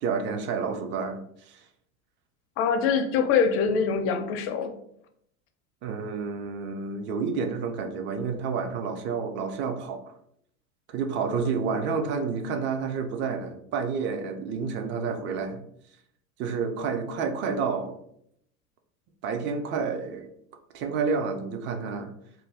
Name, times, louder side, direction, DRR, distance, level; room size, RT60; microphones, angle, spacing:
voice 1, 0.0-1.6 5.8-10.1 10.9-15.6 16.4-18.0 19.2-20.3 20.7-22.1, right 5 dB, 30° right, 6 dB, 0.4 m, -30 dB
voice 2, 2.6-4.8 11.3-11.5, left 6 dB, 30° left, 6 dB, 0.4 m, -24 dB
2.6 x 2.1 x 3.3 m, 0.71 s
hypercardioid pair, 95°, 43 cm